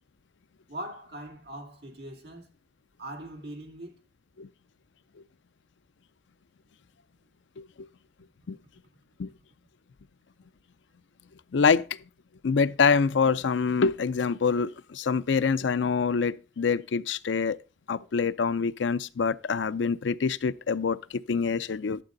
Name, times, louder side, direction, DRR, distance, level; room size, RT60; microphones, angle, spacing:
voice 1, 0.7-2.5 3.0-3.9, right 1 dB, 60° right, 2.5 m, -41 dB
voice 2, 11.5-11.9 12.4-17.6 17.9-22.0, left 5 dB, 85° left, 0.5 m, -25 dB
11.5 x 7.5 x 3.9 m
head